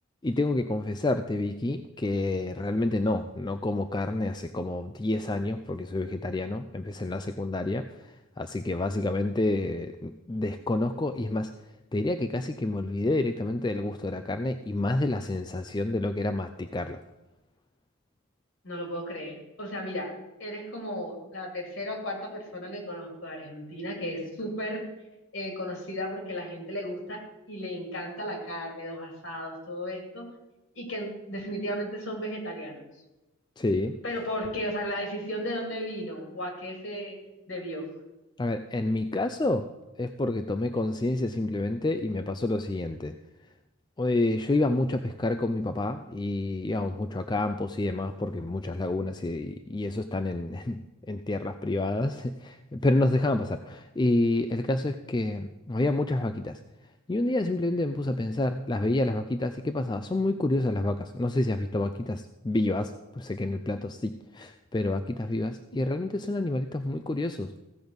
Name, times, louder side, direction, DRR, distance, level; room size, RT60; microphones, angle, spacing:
voice 1, 0.2-11.5 11.9-17.0 33.6-34.0 38.4-39.7 40.0-43.1 44.0-50.8 51.1-56.6 57.1-67.5, left 2 dB, 20° left, 8 dB, 0.3 m, -28 dB
voice 2, 18.6-24.9 25.3-30.3 30.7-32.8 34.0-37.2 37.5-37.9, equal, 60° left, 2 dB, 2.9 m, -35 dB
15.5 x 5.3 x 7.9 m, 1.0 s
head